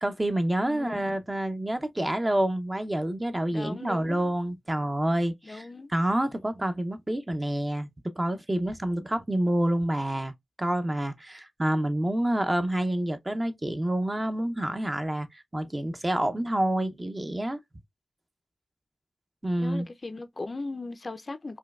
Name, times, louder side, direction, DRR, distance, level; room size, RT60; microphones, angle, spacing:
voice 1, 0.0-7.9 8.2-10.3 10.6-17.6 19.4-19.9, right 1 dB, 25° right, 0.6 m, -28 dB
voice 2, 0.6-1.0 3.5-4.2 5.4-5.9 19.6-21.6, left 3 dB, 45° left, 0.4 m, -38 dB
4.4 x 2.2 x 2.3 m
cardioid pair, 45°, 0 cm